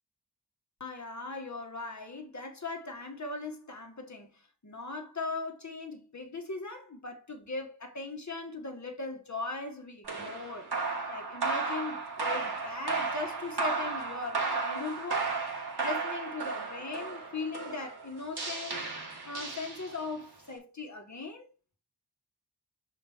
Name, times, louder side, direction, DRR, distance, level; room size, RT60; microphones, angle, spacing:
voice 1, 0.8-10.7 11.1-15.4 15.8-18.9 19.3-21.5, left 3 dB, 45° left, 1.6 m, -39 dB
sound 1, 10.0-20.2, right 4 dB, 70° right, 1.9 m, -34 dB
6.1 x 4.9 x 3.6 m
wide cardioid pair, 65°, 40 cm